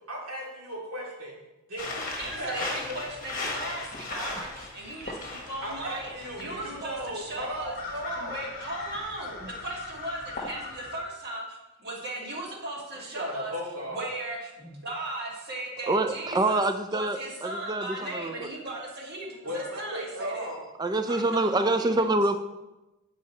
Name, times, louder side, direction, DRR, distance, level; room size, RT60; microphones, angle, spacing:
voice 1, 0.1-1.3 1.7-2.9 5.6-8.4 12.9-14.1 19.4-20.6, equal, 70° right, -4 dB, 2.4 m, -36 dB
sound 1, 1.8-11.0, left 3 dB, 40° left, 1.2 m, -38 dB
voice 2, 2.1-7.7 8.1-13.5 13.9-16.6 16.9-20.5 21.0-22.1, right 1 dB, 45° right, -3 dB, 1.8 m, -37 dB
voice 3, 15.8-18.5 20.8-22.4, right 2 dB, 20° right, 8 dB, 0.4 m, -26 dB
8.5 x 4.9 x 4.2 m, 1.0 s
head